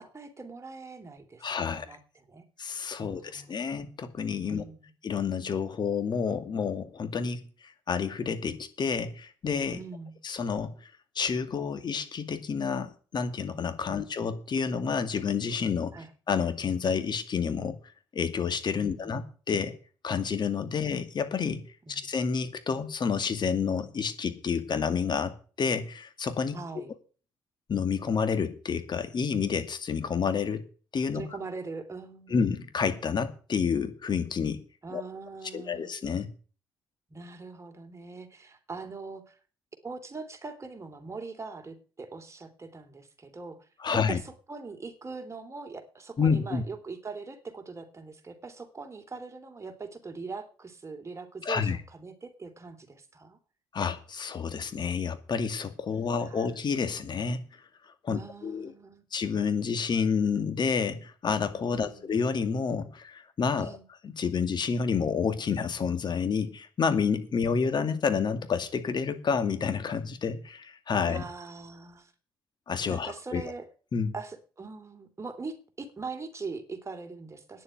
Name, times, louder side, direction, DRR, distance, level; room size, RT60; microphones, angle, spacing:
voice 1, 0.0-2.4 3.0-3.5 4.5-4.9 9.7-10.2 13.9-14.1 15.9-16.1 18.8-19.1 21.9-22.1 26.5-26.9 31.1-32.4 34.8-36.0 37.1-39.4 39.8-43.7 44.1-53.4 55.9-56.5 58.1-59.0 61.7-62.0 63.5-63.8 71.0-72.1 72.9-73.7 74.1-77.6, right 4 dB, 30° right, 5 dB, 3.1 m, -42 dB
voice 2, 1.4-1.9 2.6-4.6 5.0-9.8 10.2-10.7 11.2-15.9 16.3-17.8 18.1-19.8 20.0-21.6 21.9-26.6 27.7-30.6 30.9-31.2 32.3-34.6 34.9-35.0 35.5-36.3 43.8-44.2 46.2-46.6 51.4-51.8 53.7-57.4 58.0-58.7 59.1-63.7 64.2-71.2 72.7-73.4 73.9-74.1, left 6 dB, 45° left, 10 dB, 2.2 m, -29 dB
9.9 x 7.4 x 9.1 m, 0.39 s
hypercardioid pair, 55°, 10 cm